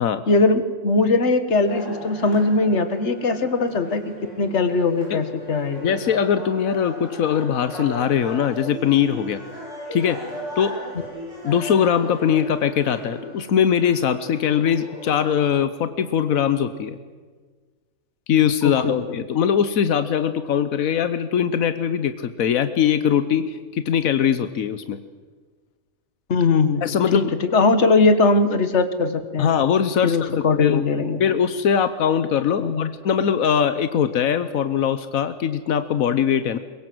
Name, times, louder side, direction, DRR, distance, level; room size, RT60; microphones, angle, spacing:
voice 1, 0.3-6.0 11.0-11.1 18.6-18.9 26.3-26.9 27.1-29.5 30.0-31.2 32.6-32.9, left 3 dB, 55° left, 10 dB, 1.8 m, -20 dB
sound 1, 1.7-15.5, equal, 60° right, 7.6 m, -37 dB
voice 2, 5.8-9.4 9.9-10.2 10.6-10.7 11.4-17.0 18.3-25.0 26.8-27.3 29.4-30.8 31.2-36.6, left 8 dB, 90° left, 12 dB, 1.3 m, -21 dB
23.0 x 21.5 x 7.8 m, 1.5 s
omnidirectional pair, 1.4 m